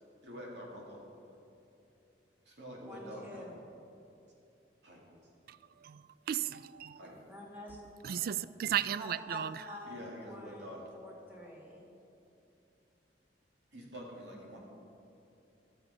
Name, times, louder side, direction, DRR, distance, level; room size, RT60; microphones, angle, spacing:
voice 1, 0.2-1.0 2.5-3.5 4.8-5.0 6.9-7.2 8.0-8.2 9.9-10.9 13.7-14.6, equal, 75° right, -3 dB, 2.4 m, -46 dB
voice 2, 2.8-3.4 7.0-7.8 9.0-11.9, equal, 10° right, -3 dB, 1.9 m, -48 dB
voice 3, 5.5-7.0 8.0-9.6, right 9 dB, 55° right, 16 dB, 0.3 m, -35 dB
13.5 x 6.9 x 5.4 m, 2.7 s
head